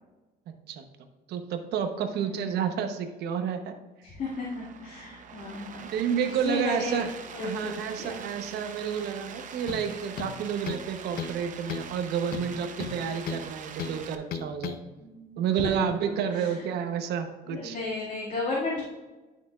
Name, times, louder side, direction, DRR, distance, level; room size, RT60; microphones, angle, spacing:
voice 1, 0.5-0.9 1.3-3.7 5.8-7.1 7.4-14.8 15.4-17.8, right 7 dB, 80° right, 7 dB, 0.9 m, -30 dB
voice 2, 4.0-5.8 6.4-7.0 7.3-8.2 15.0-15.7 16.3-16.6 17.5-18.8, left 3 dB, 50° left, -6 dB, 2.2 m, -34 dB
sound 1, 4.2-14.2, right 7 dB, 50° right, 0.7 m, -44 dB
sound 2, 9.7-9.9 10.2-10.9 11.2-11.4 11.7-11.9 12.3-13.5 13.8-14.0 14.3-14.8, left 7 dB, 65° left, 0.7 m, -35 dB
11.5 x 5.9 x 2.4 m, 1.2 s
cardioid pair, 120°, 17 cm